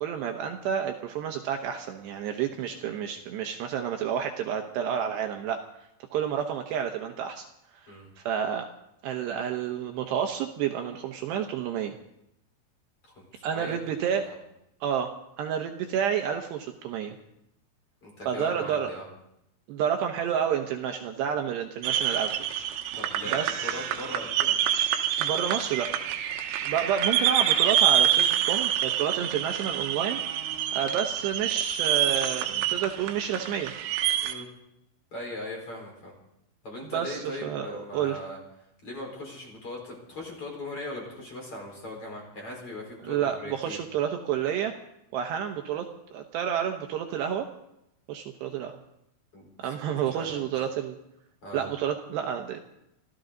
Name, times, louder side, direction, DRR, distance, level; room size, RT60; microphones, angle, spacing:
voice 1, 0.0-5.6 6.1-7.5 7.7-8.7 9.0-11.9 13.4-14.2 14.8-15.1 15.4-17.2 18.3-18.9 19.7-22.7 23.3-23.8 25.2-25.9 26.6-30.2 30.7-33.7 36.9-38.2 43.0-44.7 45.1-45.9 46.1-47.5 48.1-48.7 49.6-51.0 51.5-52.6, right 8 dB, 75° right, 4 dB, 2.8 m, -30 dB
voice 2, 13.0-13.8 14.2-14.4 18.0-19.0 22.9-24.5 34.2-34.5 35.1-36.1 36.6-38.4 38.8-43.8 49.3-49.7 50.0-50.5 51.4-51.7, left 1 dB, 30° left, 0 dB, 4.9 m, -39 dB
sound 1, 21.8-34.3, right 10 dB, 90° right, 3.5 m, -27 dB
25.5 x 14.5 x 3.9 m, 0.81 s
omnidirectional pair, 5.4 m